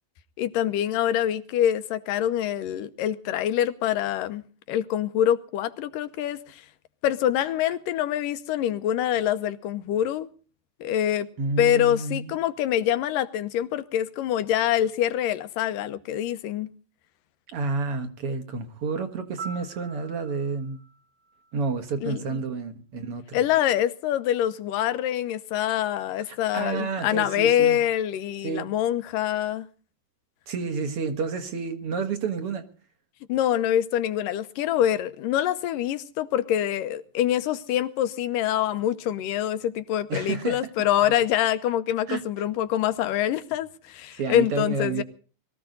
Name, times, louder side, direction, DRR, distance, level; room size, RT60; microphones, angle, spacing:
voice 1, 0.4-4.4 4.7-6.6 7.0-10.3 10.8-11.3 11.6-16.7 22.0-22.2 23.3-29.7 33.3-45.0, left 11 dB, 75° left, 2.6 m, -25 dB
voice 2, 11.4-12.4 17.5-20.8 21.5-23.4 26.3-27.8 28.4-28.7 30.5-32.6 40.1-40.9 42.1-42.2 44.1-45.0, right 4 dB, 50° right, 2.2 m, -30 dB
Piano, 19.4-22.3 30.5-30.7, right 3 dB, 65° right, 3.9 m, -45 dB
23.0 x 14.5 x 4.0 m
omnidirectional pair, 4.0 m